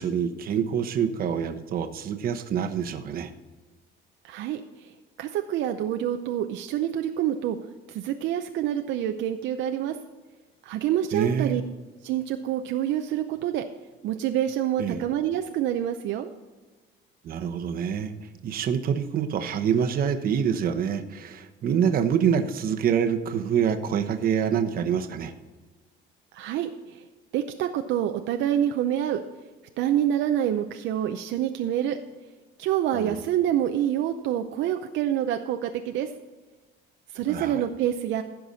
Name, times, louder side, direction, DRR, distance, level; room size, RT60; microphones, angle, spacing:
voice 1, 0.0-3.3 11.1-11.6 14.8-15.0 17.2-18.1 18.4-25.3 32.9-33.2 37.3-37.6, right 8 dB, 50° right, 7 dB, 1.0 m, -26 dB
voice 2, 4.2-4.9 5.2-7.6 7.9-10.0 10.6-11.6 12.0-13.6 14.0-16.3 26.3-27.0 27.3-29.2 29.8-32.0 32.6-36.1 37.1-38.2, right 11 dB, 70° right, 6 dB, 0.7 m, -27 dB
15.5 x 6.0 x 4.1 m, 1.3 s
cardioid pair, 145°, 20 cm